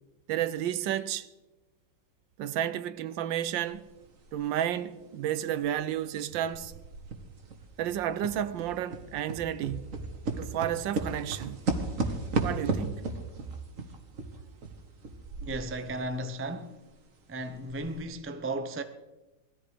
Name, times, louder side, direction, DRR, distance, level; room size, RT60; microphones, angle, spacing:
voice 1, 0.3-1.3 2.4-3.9 4.3-6.7 7.8-9.9 10.4-11.6 12.4-12.9, right 11 dB, 85° right, 1.5 m, -31 dB
sound 1, 3.7-3.8 4.3-6.2 6.5-16.1 16.3-16.4 16.9-17.0 17.5-18.0, right 3 dB, 45° right, 1.8 m, -35 dB
voice 2, 15.4-16.8 17.3-18.8, right 2 dB, 20° right, 0.3 m, -35 dB
18.5 x 13.5 x 5.1 m
omnidirectional pair, 2.0 m